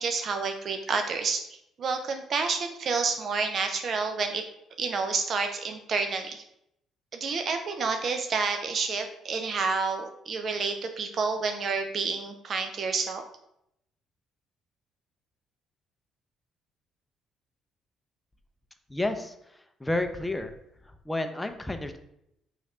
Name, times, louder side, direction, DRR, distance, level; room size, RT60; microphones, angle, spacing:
voice 1, 0.0-1.4 1.8-4.4 4.8-6.4 7.1-13.2, right 4 dB, 55° right, 5 dB, 0.4 m, -29 dB
voice 2, 18.9-19.3 19.8-20.5 21.1-22.0, left 2 dB, 15° left, 7 dB, 0.4 m, -30 dB
3.2 x 2.4 x 4.1 m, 0.79 s
supercardioid pair, 65°, 0 cm